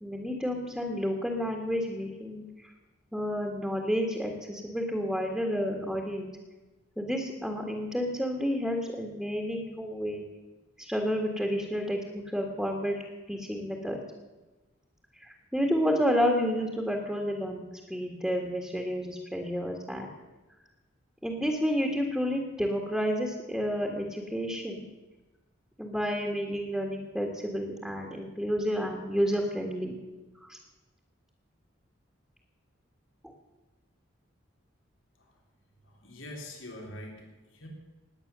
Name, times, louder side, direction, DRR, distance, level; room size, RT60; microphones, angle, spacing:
voice 1, 0.0-2.7 3.1-6.3 7.0-10.2 10.8-13.0 13.3-14.0 15.2-20.1 21.2-24.9 25.8-30.0 30.4-30.6 33.2-33.3, equal, ahead, 1 dB, 1.7 m, -30 dB
voice 2, 35.9-37.7, left 1 dB, 80° left, 0 dB, 3.5 m, -44 dB
19.0 x 8.9 x 6.8 m, 1.1 s
head